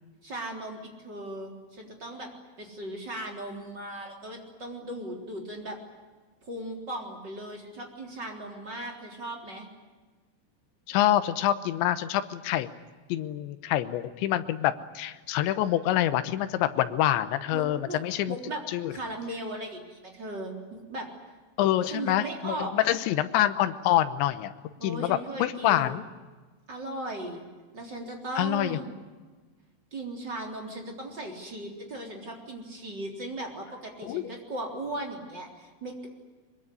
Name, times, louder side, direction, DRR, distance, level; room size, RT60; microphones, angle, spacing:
voice 1, 0.2-2.3 2.6-5.8 6.4-9.7 17.5-18.0 18.3-18.6 18.9-21.1 21.8-22.9 24.8-26.0 26.7-27.5 27.7-28.9 29.9-36.1, right 1 dB, 25° right, 1 dB, 3.6 m, -37 dB
voice 2, 10.9-12.7 13.1-18.4 18.7-18.9 21.6-24.5 24.8-26.0 28.4-28.8 34.1-34.2, left 13 dB, 75° left, 11 dB, 3.1 m, -26 dB
23.0 x 22.5 x 9.9 m, 1.3 s
omnidirectional pair, 5.7 m